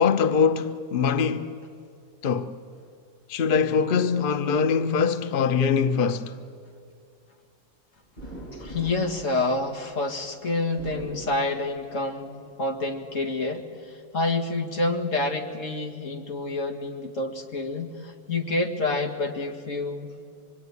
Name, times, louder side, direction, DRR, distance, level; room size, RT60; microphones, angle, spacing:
voice 1, 0.0-1.6 2.2-2.6 3.3-6.4, left 6 dB, 75° left, 0.4 m, -23 dB
sound 1, 8.2-10.1 10.6-12.0 12.4-13.3, right 1 dB, 20° left, 8.3 m, -42 dB
voice 2, 8.5-20.1, left 2 dB, 40° left, 2.2 m, -28 dB
25.5 x 23.0 x 9.6 m
omnidirectional pair, 2.1 m